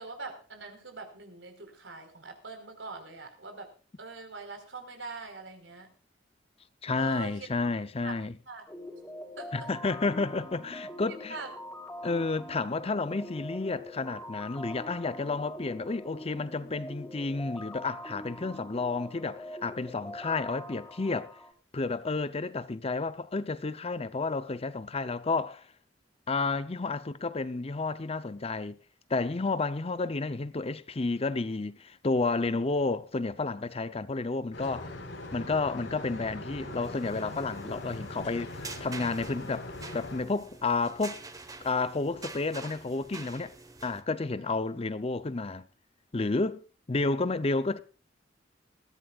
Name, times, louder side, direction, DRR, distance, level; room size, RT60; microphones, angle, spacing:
voice 1, 0.0-3.7 4.0-5.9 6.9-7.5 8.0-8.2 8.5-8.6 9.4-9.7 11.1-11.5 44.2-44.4, right 3 dB, 90° right, 4.4 m, -43 dB
voice 2, 6.8-8.4 9.5-11.4 12.0-21.3 21.7-25.7 26.3-28.8 29.1-34.9 35.3-41.2 41.6-43.5 43.8-45.7 46.1-47.8, left 3 dB, 35° left, 0.7 m, -31 dB
sound 1, 8.7-21.5, left 1 dB, 10° left, 3.5 m, -44 dB
sound 2, 34.5-40.2, left 2 dB, 90° left, 4.6 m, -41 dB
sound 3, 36.6-44.0, right 3 dB, 20° right, 1.2 m, -47 dB
21.0 x 15.0 x 2.4 m
head